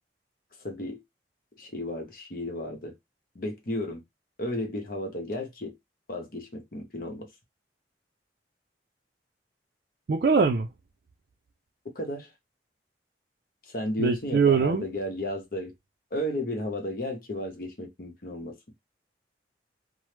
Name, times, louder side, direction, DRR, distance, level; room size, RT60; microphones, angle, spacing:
voice 1, 0.6-1.0 1.6-3.0 3.3-4.0 4.4-5.8 6.1-7.3 11.9-12.3 13.6-15.7 16.1-18.6, left 1 dB, 55° left, 0.8 m, -33 dB
voice 2, 10.1-10.7 14.0-14.8, right 5 dB, 55° right, 0.4 m, -22 dB
3.0 x 2.0 x 3.2 m
head